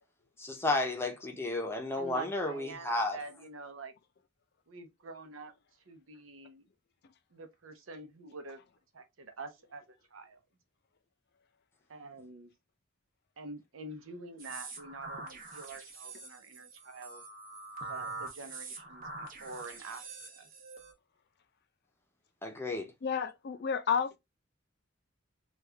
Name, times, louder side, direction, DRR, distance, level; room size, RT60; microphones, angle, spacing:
voice 1, 0.4-3.2 22.4-22.9, left 2 dB, 10° left, 0.7 m, -32 dB
voice 2, 1.9-3.9 4.7-5.5 5.9-6.7 7.3-8.6 8.9-10.4 11.9-12.5 13.4-17.2 17.9-20.5, right 3 dB, 80° right, 0.7 m, -46 dB
sound 1, 14.4-20.9, right 3 dB, 45° right, 0.9 m, -44 dB
voice 3, 23.0-24.2, left 6 dB, 55° left, 0.4 m, -31 dB
3.1 x 2.4 x 3.3 m
head